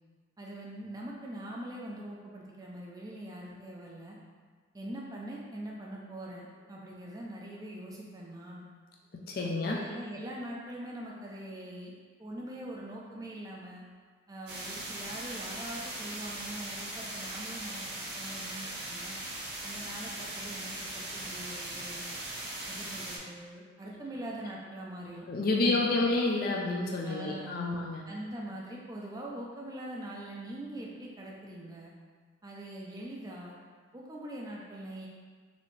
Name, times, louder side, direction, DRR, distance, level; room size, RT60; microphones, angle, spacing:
voice 1, 0.4-4.2 4.7-8.6 9.4-11.9 12.2-13.8 14.3-19.2 19.6-22.2 22.7-26.1 27.0-27.6 28.1-31.9 32.4-33.6 33.9-35.1, right 1 dB, 20° right, -3 dB, 0.4 m, -43 dB
voice 2, 9.1-9.8 25.3-28.1, left 2 dB, 50° left, -1 dB, 0.4 m, -29 dB
sound 1, 14.5-23.2, right 1 dB, 55° right, 0.7 m, -39 dB
4.0 x 2.7 x 3.1 m, 1.5 s
head